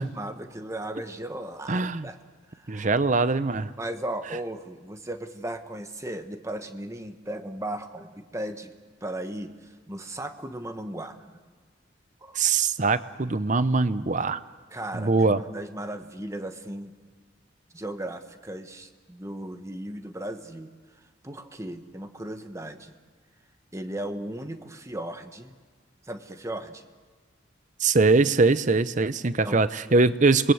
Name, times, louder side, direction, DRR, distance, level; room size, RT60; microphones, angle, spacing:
voice 1, 0.0-2.2 2.5-2.9 3.8-8.7 9.0-11.4 12.2-12.4 14.7-16.9 17.7-23.0 23.7-25.6 26.0-26.9 29.4-29.6, right 1 dB, 15° right, 8 dB, 1.2 m, -36 dB
voice 2, 1.7-2.1 2.7-3.7 12.4-14.4 14.9-15.4 27.8-30.5, right 3 dB, 40° right, 14 dB, 0.7 m, -22 dB
27.0 x 20.5 x 8.0 m, 1.5 s
head